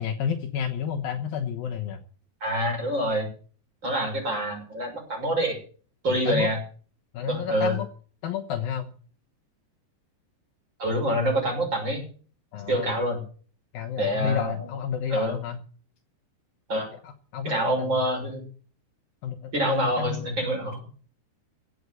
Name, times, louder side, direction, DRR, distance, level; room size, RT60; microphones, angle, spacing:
voice 1, 0.0-2.0 6.1-6.5 7.1-7.9 8.2-8.9 12.5-12.9 13.7-15.6 16.9-18.0 19.2-20.2, left 8 dB, 70° left, 3 dB, 2.6 m, -31 dB
voice 2, 2.4-3.3 3.8-5.6 6.0-6.6 7.3-7.8 10.8-12.0 12.7-13.2 14.0-14.5 15.1-15.3 16.7-16.9 17.4-18.4 19.5-20.8, right 1 dB, 25° right, 1 dB, 6.8 m, -26 dB
16.5 x 8.3 x 7.9 m, 0.43 s
omnidirectional pair, 4.8 m